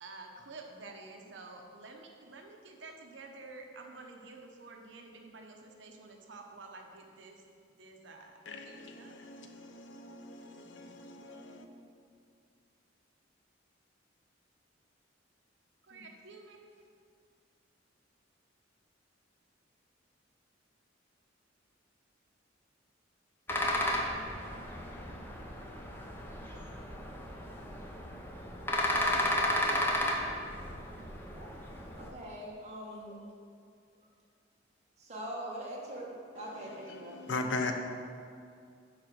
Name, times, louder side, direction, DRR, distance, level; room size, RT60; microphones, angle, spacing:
voice 1, 0.0-7.4 7.8-9.1 15.8-16.7, right 3 dB, 70° right, 2 dB, 0.9 m, -50 dB
voice 2, 8.5-11.7 36.4-37.7, left 3 dB, 70° left, 5 dB, 0.7 m, -39 dB
sound 1, 23.5-32.1, left 1 dB, 10° left, 0.8 m, -33 dB
voice 3, 32.0-33.3 35.0-37.2, right 1 dB, 35° right, -4 dB, 1.7 m, -43 dB
10.0 x 3.8 x 6.2 m, 2.3 s
head